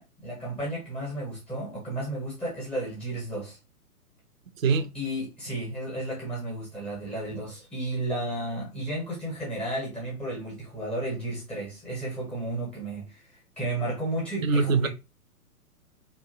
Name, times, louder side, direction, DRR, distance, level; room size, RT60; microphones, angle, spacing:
voice 1, 0.0-3.6 4.9-14.9, right 1 dB, 5° left, 0.5 m, -33 dB
voice 2, 4.6-4.9 14.4-14.9, right 4 dB, 60° right, 0.5 m, -23 dB
2.6 x 2.2 x 2.5 m
figure-of-eight pair, 115°, 46 cm